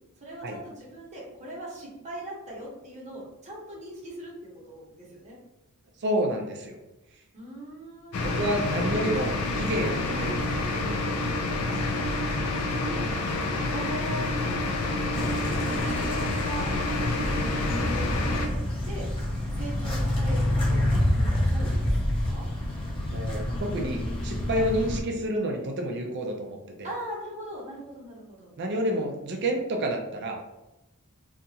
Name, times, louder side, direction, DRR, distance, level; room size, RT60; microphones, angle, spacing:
voice 1, 0.2-5.4 7.3-8.4 12.7-16.7 17.1-18.6 18.9-19.1 19.5-22.4 24.5-24.7 26.8-28.5, right 1 dB, 30° right, -5 dB, 0.9 m, -40 dB
voice 2, 6.0-6.8 8.2-12.0 14.1-14.2 23.1-26.9 28.6-30.4, right 1 dB, 50° right, 2 dB, 0.4 m, -30 dB
sound 1, 8.1-18.5, left 2 dB, 80° left, 0.4 m, -28 dB
sound 2, 15.1-25.0, left 1 dB, 25° left, 0.6 m, -28 dB
2.8 x 2.3 x 2.7 m, 0.96 s
head